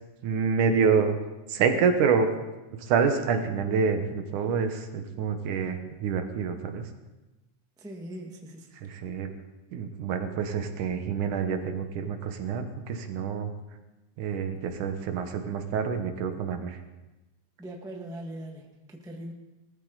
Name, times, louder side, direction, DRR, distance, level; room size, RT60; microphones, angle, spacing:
voice 1, 0.2-1.2 1.5-2.3 2.8-6.9 8.8-9.3 9.7-13.5 14.2-16.8, right 6 dB, 80° right, 6 dB, 2.7 m, -27 dB
voice 2, 7.8-8.7 17.6-19.3, right 1 dB, 5° right, 1 dB, 0.7 m, -40 dB
19.5 x 14.0 x 4.0 m, 1.1 s
omnidirectional pair, 3.6 m